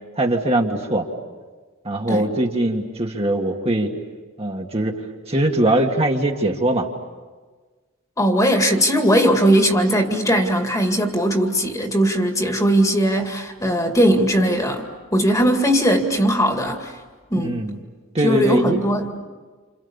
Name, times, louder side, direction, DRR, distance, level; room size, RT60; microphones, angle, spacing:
voice 1, 0.2-1.1 1.8-3.9 4.4-5.0 5.3-6.9 17.4-17.8 18.1-18.9, right 1 dB, 30° right, 1 dB, 1.9 m, -21 dB
voice 2, 8.2-17.0 17.3-17.6 18.2-19.2, equal, 15° left, 4 dB, 2.2 m, -19 dB
29.0 x 28.5 x 7.2 m, 1.4 s
head